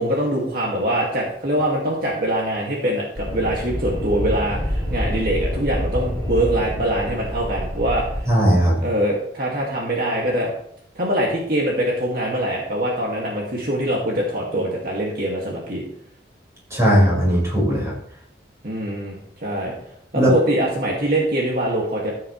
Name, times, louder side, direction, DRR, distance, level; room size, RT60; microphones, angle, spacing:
voice 1, 0.0-8.1 8.8-10.5 11.0-15.8 18.6-19.7 20.3-22.1, right 1 dB, 50° right, -3 dB, 2.3 m, -23 dB
sound 1, 3.1-8.3, equal, 5° left, 5.1 m, -27 dB
voice 2, 8.3-8.9 16.7-17.9 20.1-20.3, equal, 15° right, -5 dB, 5.5 m, -17 dB
14.0 x 8.8 x 3.3 m, 0.69 s
head